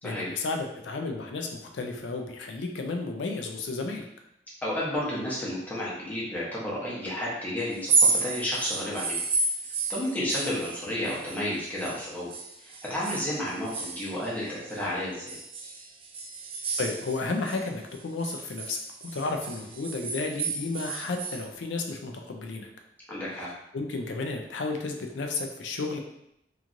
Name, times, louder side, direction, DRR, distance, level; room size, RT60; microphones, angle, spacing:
voice 1, 0.0-4.1 16.8-22.7 23.4-26.0, left 3 dB, 90° left, 3 dB, 0.4 m, -33 dB
voice 2, 4.6-9.2 9.9-12.3 12.6-15.4 23.1-23.5, left 1 dB, 10° left, -7 dB, 0.8 m, -31 dB
sound 1, 7.7-12.0 12.3-14.8 15.3-17.6 17.9-21.4, right 4 dB, 30° right, 0.4 m, -31 dB
3.0 x 2.4 x 2.5 m, 0.80 s
head